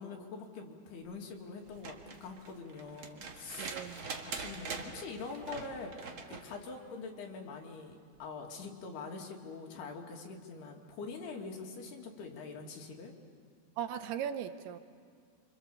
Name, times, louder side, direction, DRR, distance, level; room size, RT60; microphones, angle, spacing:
voice 1, 0.0-13.1, left 4 dB, 75° left, 1 dB, 4.1 m, -44 dB
sound 1, 1.6-6.5 8.1-8.2, right 4 dB, 55° right, 1.4 m, -44 dB
voice 2, 3.6-4.2 13.8-14.8, right 9 dB, 75° right, 9 dB, 2.8 m, -38 dB
29.0 x 25.5 x 7.1 m, 2.2 s
omnidirectional pair, 4.8 m